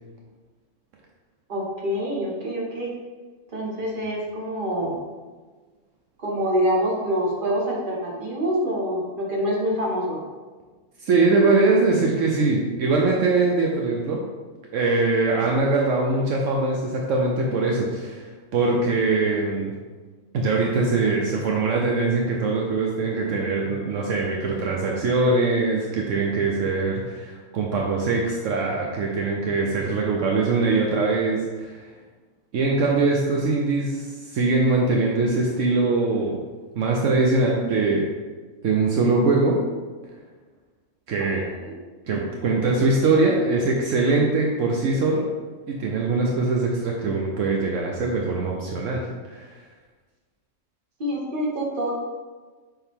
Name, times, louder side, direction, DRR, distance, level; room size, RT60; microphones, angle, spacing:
voice 1, 1.5-3.0 3.5-5.0 6.2-10.2 41.2-41.7 51.0-51.9, equal, 40° right, -2 dB, 1.4 m, -26 dB
voice 2, 11.0-14.2 14.7-18.3 18.5-19.7 20.3-31.9 32.5-36.4 36.7-38.1 38.6-39.6 41.1-41.4 42.1-45.2 45.7-49.0 49.3-49.5, right 3 dB, 70° right, -1 dB, 1.1 m, -22 dB
7.0 x 3.9 x 3.6 m, 1.4 s
omnidirectional pair, 1.4 m